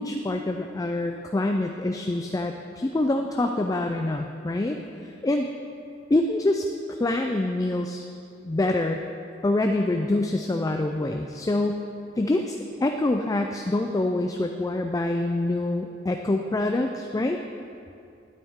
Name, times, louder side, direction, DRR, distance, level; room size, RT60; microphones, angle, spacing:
voice 1, 0.0-4.8 5.2-5.5 6.1-8.0 8.4-9.0 9.4-11.8 12.2-12.6 12.8-17.4, left 2 dB, 20° left, 4 dB, 0.3 m, -25 dB
12.0 x 9.3 x 3.6 m, 2.5 s
head